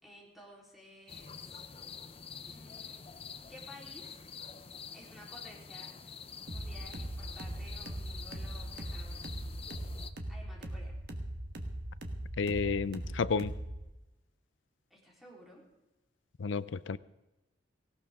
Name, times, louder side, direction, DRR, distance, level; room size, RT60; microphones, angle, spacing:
voice 1, 0.0-1.6 2.4-3.1 3.5-4.2 4.9-5.9 6.5-9.2 10.3-10.9 14.9-15.7, equal, ahead, -4 dB, 3.7 m, -54 dB
sound 1, 1.1-10.1, left 6 dB, 30° left, 0.6 m, -47 dB
sound 2, 6.5-13.9, right 1 dB, 55° right, 1.6 m, -40 dB
voice 2, 12.4-13.5 16.4-17.0, left 4 dB, 75° left, 17 dB, 0.5 m, -31 dB
18.0 x 17.5 x 3.6 m, 1.0 s
head